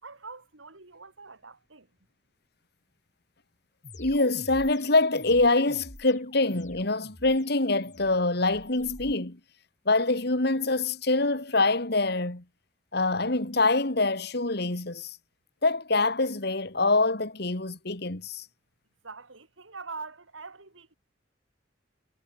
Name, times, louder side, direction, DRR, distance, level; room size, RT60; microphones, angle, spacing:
voice 1, 0.0-1.9 19.0-21.0, right 4 dB, 90° right, 3.4 m, -44 dB
sound 1, 3.8-9.1, left 1 dB, 40° left, 4.7 m, -48 dB
voice 2, 4.0-9.4 9.9-12.4 12.9-15.2 15.6-18.5, left 2 dB, 55° left, 2.2 m, -25 dB
head